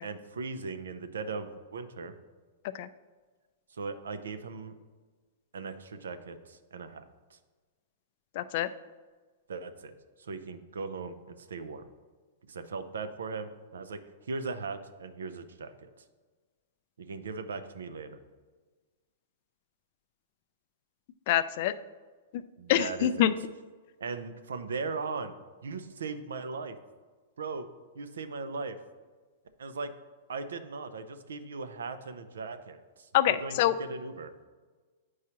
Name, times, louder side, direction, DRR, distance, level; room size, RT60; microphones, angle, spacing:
voice 1, 0.0-2.1 3.7-4.7 5.5-7.0 7.3-7.4 9.5-9.9 10.2-11.8 12.5-15.9 17.0-18.2 22.6-23.3 24.0-25.3 25.6-26.8 27.4-27.7 27.9-28.8 29.6-29.9 30.3-34.3, right 4 dB, 90° right, 10 dB, 0.5 m, -38 dB
voice 2, 8.3-8.7 21.3-21.7 22.3-22.4 22.7-23.3 33.1-33.7, left 12 dB, 55° left, 14 dB, 0.3 m, -25 dB
8.2 x 4.7 x 2.9 m, 1.4 s
hypercardioid pair, 130°, 0 cm